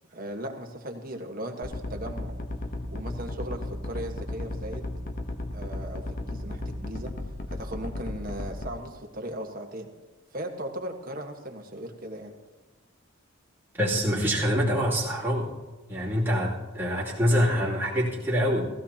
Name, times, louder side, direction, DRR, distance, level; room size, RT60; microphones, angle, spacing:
voice 1, 0.1-2.3 2.9-4.9 5.5-7.1 7.5-9.9 10.3-12.4, right 1 dB, 45° right, 2 dB, 1.5 m, -37 dB
sound 1, 1.6-8.7, left 1 dB, 45° left, 1.0 m, -34 dB
voice 2, 13.7-15.5 15.9-18.7, equal, 10° right, -7 dB, 2.8 m, -25 dB
16.0 x 16.0 x 2.9 m, 1.2 s
head